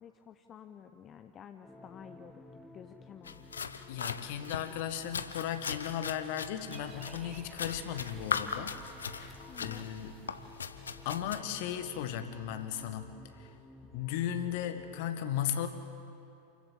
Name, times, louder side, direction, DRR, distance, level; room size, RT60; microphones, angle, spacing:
voice 1, 0.0-2.4 2.7-3.4 9.5-9.9, left 8 dB, 25° left, 8 dB, 0.8 m, -51 dB
sound 1, 1.6-15.1, left 2 dB, 10° left, 1.3 m, -54 dB
sound 2, 3.2-11.4, left 6 dB, 70° left, 0.8 m, -39 dB
voice 2, 3.9-10.2 11.1-13.5 13.9-15.7, left 10 dB, 50° left, 9 dB, 1.6 m, -36 dB
sound 3, 6.7-12.2, right 6 dB, 25° right, 1.1 m, -55 dB
28.5 x 14.5 x 7.7 m, 2.6 s
figure-of-eight pair, 90°, 0 cm